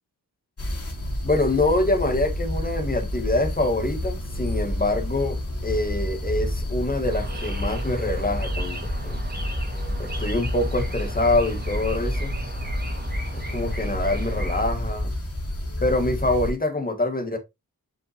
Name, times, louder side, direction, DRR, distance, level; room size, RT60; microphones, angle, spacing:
sound 1, 0.6-16.5, left 1 dB, 40° left, 2.8 m, -29 dB
voice 1, 1.2-9.2 10.0-12.3 13.3-15.1 15.8-17.4, left 2 dB, 25° left, 1.8 m, -25 dB
sound 2, 7.0-14.7, right 2 dB, 25° right, 2.2 m, -38 dB
7.2 x 5.7 x 3.0 m
cardioid pair, 70°, 37 cm